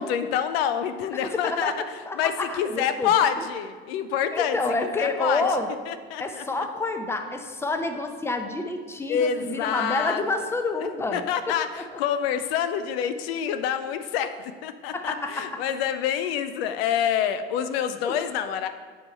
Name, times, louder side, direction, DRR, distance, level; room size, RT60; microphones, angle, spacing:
voice 1, 0.0-1.7 2.2-4.6 5.0-5.5 5.9-6.7 9.1-10.2 11.1-18.7, left 8 dB, 70° left, 10 dB, 0.5 m, -27 dB
voice 2, 1.2-1.7 2.1-3.1 4.3-5.7 6.2-11.6 14.9-15.5 18.0-18.2, left 2 dB, 10° left, 6 dB, 0.6 m, -28 dB
8.4 x 3.8 x 4.2 m, 1.5 s
hypercardioid pair, 70°, 32 cm